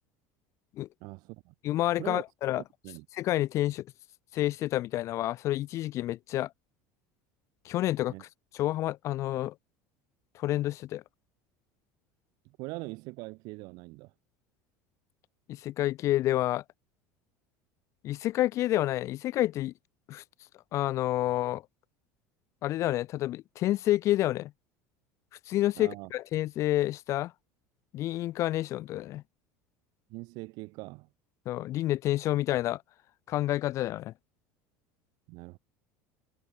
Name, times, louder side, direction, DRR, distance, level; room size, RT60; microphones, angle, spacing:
voice 1, 1.0-1.5 2.0-2.2 2.8-3.0 8.1-8.2 12.4-14.1 25.8-26.1 30.1-31.1 35.3-35.6, right 25 dB, 65° right, 1.2 m, -42 dB
voice 2, 1.6-2.6 3.1-3.9 4.3-6.5 7.6-8.3 8.5-9.5 10.3-11.0 15.5-16.6 18.0-19.7 20.1-20.2 20.7-21.6 22.6-24.5 25.5-27.3 27.9-29.2 31.5-32.8 33.3-34.1, left 15 dB, 45° left, 0.4 m, -29 dB
supercardioid pair, 130°, 7 cm